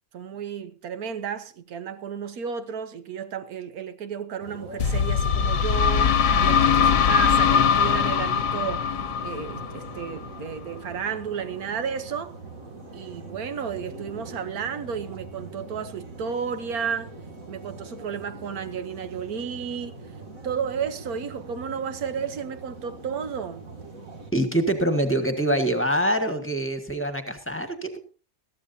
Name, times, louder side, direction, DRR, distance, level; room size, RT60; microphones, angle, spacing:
voice 1, 0.1-12.4 12.9-17.1 17.5-20.0 20.4-23.7, right 7 dB, 85° right, 1.5 m, -32 dB
sound 1, 4.4-24.3, right 3 dB, 65° right, 2.7 m, -42 dB
sound 2, 4.8-10.4, left 7 dB, 70° left, 1.2 m, -21 dB
voice 2, 24.3-28.0, right 1 dB, 10° left, 1.6 m, -25 dB
21.0 x 14.0 x 2.7 m
omnidirectional pair, 1.5 m